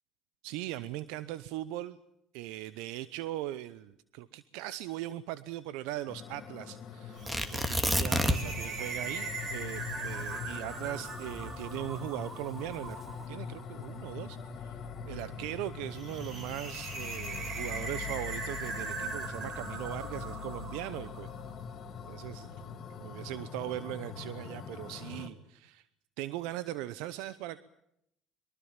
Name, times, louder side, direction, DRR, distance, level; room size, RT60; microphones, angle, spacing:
voice 1, 0.4-2.0 2.3-13.0 13.3-21.3 22.1-25.8 26.2-27.6, right 15 dB, 75° right, 16 dB, 0.8 m, -40 dB
sound 1, 6.1-25.3, left 6 dB, 55° left, 3.4 m, -43 dB
sound 2, 7.2-21.5, right 3 dB, 50° right, 7.7 m, -41 dB
Tearing, 7.3-8.7 8.9-9.0 9.6-12.0 12.7-13.1, right 1 dB, 10° right, 2.6 m, -30 dB
23.0 x 23.0 x 7.3 m, 0.76 s
hypercardioid pair, 75°, 0 cm